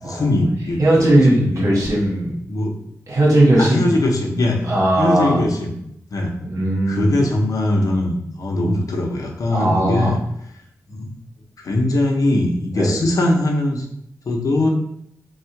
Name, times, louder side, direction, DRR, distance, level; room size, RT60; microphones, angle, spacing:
voice 1, 0.0-1.8 2.5-2.7 3.6-4.7 5.0-5.8 6.1-6.4 6.9-10.2 10.9-11.1 11.6-13.8 14.3-14.7, left 1 dB, 75° left, 1 dB, 0.8 m, -21 dB
voice 2, 0.8-2.3 3.1-3.9 4.6-5.4 6.4-7.1 9.5-10.2 12.7-12.9, right 1 dB, 60° right, -4 dB, 1.5 m, -18 dB
3.6 x 2.4 x 4.5 m, 0.74 s
wide cardioid pair, 120°, 6 cm